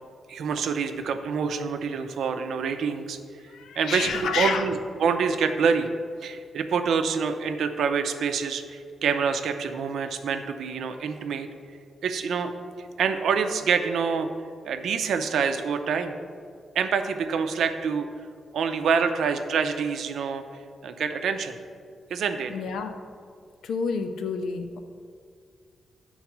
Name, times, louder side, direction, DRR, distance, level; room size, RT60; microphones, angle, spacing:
voice 1, 0.3-3.2 3.8-5.9 6.2-11.5 12.0-12.5 12.8-14.3 14.6-16.1 16.7-18.1 18.5-20.4 20.8-21.5 22.1-22.5, right 6 dB, 70° right, 7 dB, 0.6 m, -26 dB
voice 2, 3.5-4.7 22.5-22.9 23.6-24.8, left 5 dB, 90° left, 7 dB, 0.7 m, -29 dB
10.5 x 4.0 x 6.0 m, 2.2 s
wide cardioid pair, 180°, 0 cm